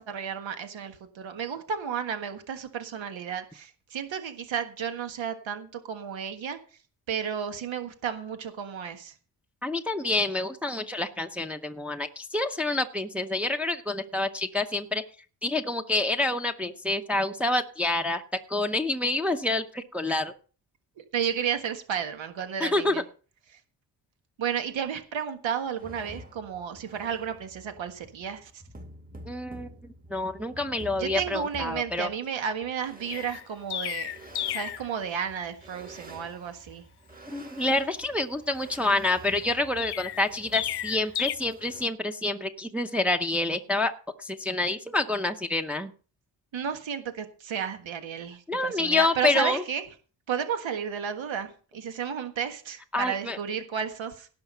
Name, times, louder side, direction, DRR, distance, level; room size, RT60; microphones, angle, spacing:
voice 1, 0.1-6.6 7.1-9.1 21.0-23.0 23.5-23.6 24.4-28.5 30.9-34.1 34.5-36.9 46.5-49.8 50.3-54.3, right 7 dB, 80° right, 7 dB, 1.6 m, -32 dB
voice 2, 9.6-15.0 15.4-18.2 18.5-20.3 22.6-23.0 29.2-29.7 30.1-32.1 37.3-43.9 44.2-45.9 48.5-49.6 52.9-53.4, left 2 dB, 5° right, 4 dB, 0.7 m, -27 dB
sound 1, 25.8-41.8, right 1 dB, 20° right, 1.6 m, -49 dB
Chirp tweet, 33.1-34.9 39.8-41.3, left 13 dB, 60° left, 0.5 m, -32 dB
17.5 x 5.9 x 5.6 m, 0.39 s
wide cardioid pair, 155°, 45 cm